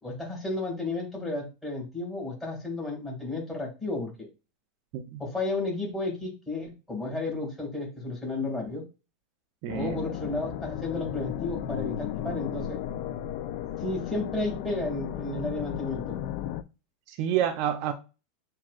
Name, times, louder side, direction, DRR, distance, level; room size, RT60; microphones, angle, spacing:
voice 1, 0.0-4.3 5.2-8.8 9.7-12.8 13.8-16.2, left 2 dB, 10° left, 2.4 m, -32 dB
voice 2, 9.6-10.0 17.1-17.9, right 10 dB, 55° right, 0.5 m, -28 dB
sound 1, 9.7-16.6, left 11 dB, 60° left, 0.4 m, -35 dB
7.3 x 2.6 x 2.5 m
supercardioid pair, 130°, 0 cm